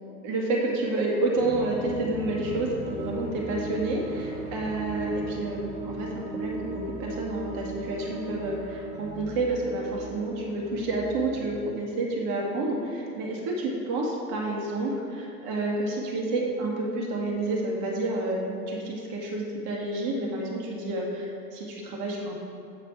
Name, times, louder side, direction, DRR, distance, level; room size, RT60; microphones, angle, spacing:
voice 1, 0.2-22.3, right 2 dB, 40° right, -2 dB, 1.9 m, -29 dB
sound 1, 1.4-11.6, right 3 dB, 80° right, 1.8 m, -38 dB
8.5 x 4.9 x 4.7 m, 2.6 s
hypercardioid pair, 100°, 46 cm